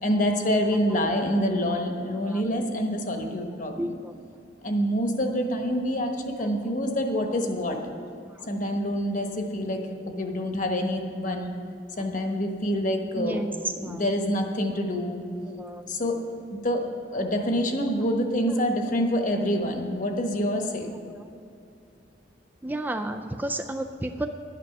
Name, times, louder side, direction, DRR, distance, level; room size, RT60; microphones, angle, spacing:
voice 1, 0.0-3.9 4.6-7.8 8.5-9.8 10.2-11.5 12.0-13.4 13.7-15.3 15.9-20.9, equal, 45° left, 4 dB, 1.2 m, -26 dB
voice 2, 3.8-4.1 13.2-13.5 13.8-14.0 15.6-15.8 22.6-24.3, right 1 dB, 10° right, 5 dB, 0.3 m, -31 dB
12.0 x 9.4 x 6.0 m, 2.6 s
head